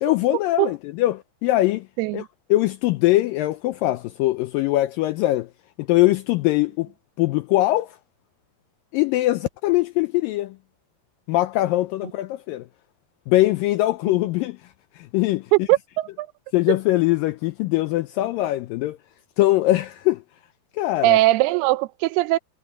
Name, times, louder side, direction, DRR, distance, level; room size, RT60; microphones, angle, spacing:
voice 1, 0.0-1.9 2.1-2.3 2.5-5.5 5.8-6.9 7.2-8.0 8.9-10.6 11.3-12.7 13.3-14.6 15.0-15.5 16.5-19.0 19.4-20.2 20.8-21.2, left 17 dB, 85° left, 2.0 m, -21 dB
voice 2, 15.5-16.3 16.7-16.8 21.0-22.4, right 18 dB, 85° right, 2.7 m, -20 dB
omnidirectional pair, 4.6 m